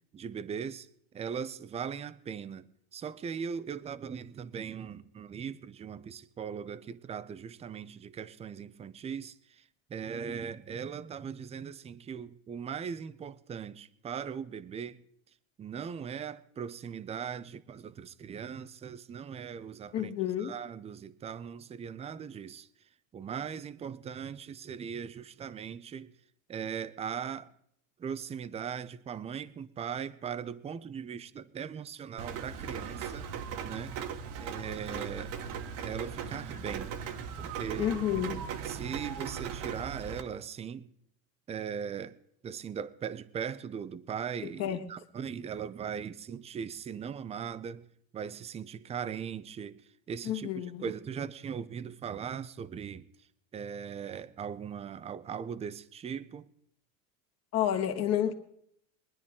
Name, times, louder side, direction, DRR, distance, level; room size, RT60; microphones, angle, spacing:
voice 1, 0.1-0.9 1.1-15.0 15.6-20.1 20.4-22.7 23.1-26.1 26.5-27.5 28.0-33.3 33.6-33.9 34.4-35.3 35.8-36.9 37.4-38.0 38.6-40.9 41.5-42.2 42.4-47.9 48.1-53.0 53.5-56.5, right 7 dB, 15° right, 0.6 m, -39 dB
voice 2, 19.9-20.5 37.8-38.4 44.6-44.8 50.3-50.9 57.5-58.3, left 10 dB, 40° left, 1.8 m, -30 dB
Rain, 32.2-40.2, right 7 dB, 50° right, 1.5 m, -38 dB
22.5 x 10.0 x 3.6 m
supercardioid pair, 125°, 41 cm